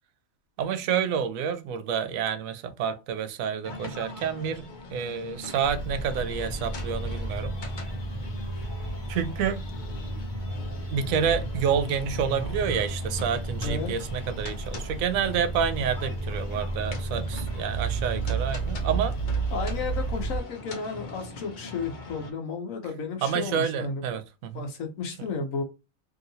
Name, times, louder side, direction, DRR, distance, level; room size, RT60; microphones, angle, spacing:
voice 1, 0.6-7.6 9.1-9.6 10.9-19.1 23.2-24.7 25.2-25.3, right 7 dB, 90° right, 1.0 m, -29 dB
sound 1, 3.6-22.3, left 2 dB, 45° left, 0.7 m, -41 dB
sound 2, 5.6-20.4, right 3 dB, 30° right, 0.5 m, -32 dB
voice 2, 13.6-13.9 19.5-24.0 24.5-25.6, left 4 dB, 80° left, 1.2 m, -33 dB
3.0 x 2.8 x 2.6 m
omnidirectional pair, 1.4 m